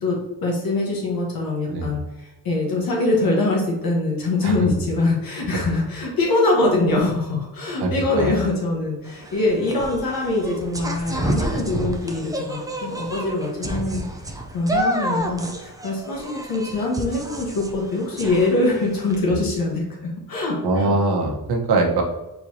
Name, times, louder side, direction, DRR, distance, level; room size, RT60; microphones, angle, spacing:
voice 1, 0.0-14.0 14.5-21.0, left 2 dB, 65° left, -2 dB, 1.2 m, -23 dB
voice 2, 7.8-8.4 19.3-19.4 20.6-22.0, right 2 dB, 80° right, 2 dB, 1.0 m, -22 dB
sound 1, 9.1-19.2, right 1 dB, 10° right, 0.4 m, -29 dB
4.5 x 4.1 x 2.7 m, 1.0 s
wide cardioid pair, 155°, 38 cm